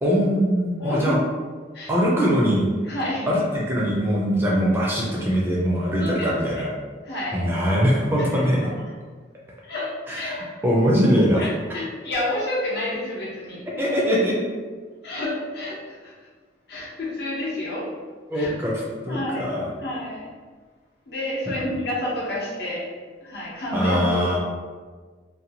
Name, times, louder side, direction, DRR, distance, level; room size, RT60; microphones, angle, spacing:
voice 1, 0.0-1.2 1.9-2.7 3.3-6.7 7.3-8.7 10.1-11.5 13.8-14.4 18.3-19.7 21.5-21.6 23.7-24.4, equal, 10° right, -5 dB, 0.4 m, -22 dB
voice 2, 0.8-1.1 1.7-1.9 2.8-3.3 6.0-6.3 6.6-6.7 7.1-7.4 8.2-8.7 9.6-10.5 11.4-13.6 15.0-16.1 16.7-17.9 18.3-18.5 19.1-19.5 19.8-20.3 21.1-22.9 23.2-24.4, left 1 dB, 60° left, -5 dB, 0.8 m, -29 dB
2.7 x 2.2 x 2.8 m, 1.5 s
head